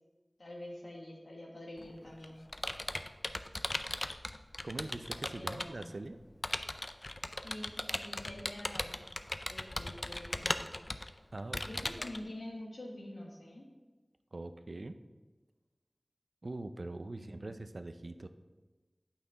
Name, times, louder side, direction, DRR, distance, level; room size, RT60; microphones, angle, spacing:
voice 1, 0.4-2.5 5.4-5.9 7.4-9.0 9.4-10.9 11.6-13.7 17.1-17.6, left 1 dB, 90° left, -1 dB, 1.5 m, -47 dB
Computer keyboard, 1.8-5.8 6.4-12.2, left 1 dB, 45° left, 0.4 m, -38 dB
voice 2, 4.6-6.2 11.3-11.9 14.3-14.9 16.4-18.3, right 2 dB, 70° right, 9 dB, 0.4 m, -43 dB
8.6 x 5.8 x 3.9 m, 1.2 s
wide cardioid pair, 55°, 0 cm